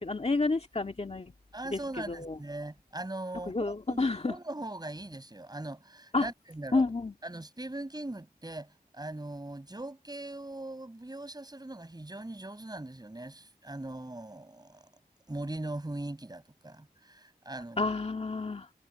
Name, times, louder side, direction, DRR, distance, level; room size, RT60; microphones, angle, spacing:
voice 1, 0.0-1.3 1.7-1.8 2.1-2.4 3.5-4.4 6.1-6.3 6.7-7.1 17.8-18.7, left 3 dB, 40° left, 2.0 m, -29 dB
voice 2, 1.5-3.5 3.9-6.8 7.2-14.9 15.3-17.9, right 2 dB, 25° right, 5.7 m, -40 dB
wide cardioid pair, 85°, 16 cm